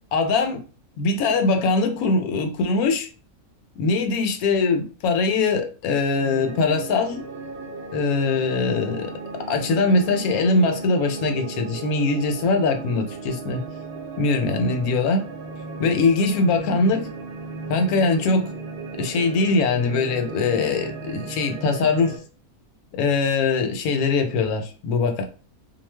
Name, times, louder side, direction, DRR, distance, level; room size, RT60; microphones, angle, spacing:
voice 1, 0.1-0.6 1.0-3.1 3.8-7.2 7.9-9.1 9.5-13.6 14.2-15.2 15.8-17.1 17.7-18.5 19.0-22.2 22.9-25.2, left 3 dB, 75° left, 6 dB, 1.0 m, -22 dB
sound 1, 6.2-22.2, right 4 dB, 60° right, 0.7 m, -35 dB
2.4 x 2.1 x 3.2 m, 0.36 s
omnidirectional pair, 1.6 m